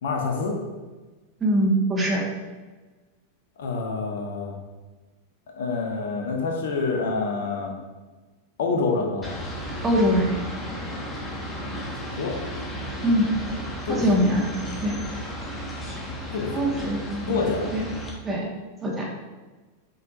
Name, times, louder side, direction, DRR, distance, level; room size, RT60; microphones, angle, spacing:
voice 1, 0.0-0.6 3.6-4.5 5.6-7.7 8.6-9.4 12.2-12.4 13.9-14.2 16.3-16.7 17.3-17.7, left 4 dB, 60° left, 2 dB, 1.1 m, -27 dB
voice 2, 1.4-2.2 9.8-10.3 13.0-13.3 13.9-14.4 14.8-15.0 16.5-17.8 18.2-18.4 18.8-19.1, equal, 20° right, -1 dB, 1.7 m, -23 dB
sound 1, 9.2-18.1, equal, 10° left, 1.5 m, -34 dB
8.0 x 5.7 x 2.6 m, 1.2 s
figure-of-eight pair, 90°, 0 cm